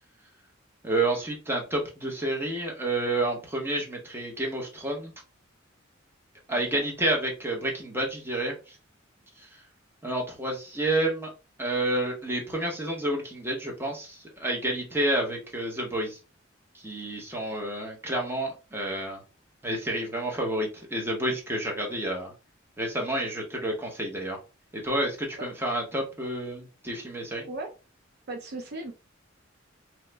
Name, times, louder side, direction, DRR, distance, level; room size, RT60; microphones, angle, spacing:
voice 1, 0.8-5.1 6.5-8.8 9.4-9.5 10.0-11.3 11.6-16.2 16.7-19.2 19.6-22.3 22.8-24.4 24.7-27.4, right 1 dB, 10° right, 0 dB, 0.8 m, -29 dB
voice 2, 6.5-6.9 25.4-25.5 27.4-27.7 28.3-28.9, right 2 dB, 55° right, 4 dB, 0.5 m, -37 dB
3.0 x 2.1 x 3.2 m, 0.31 s
head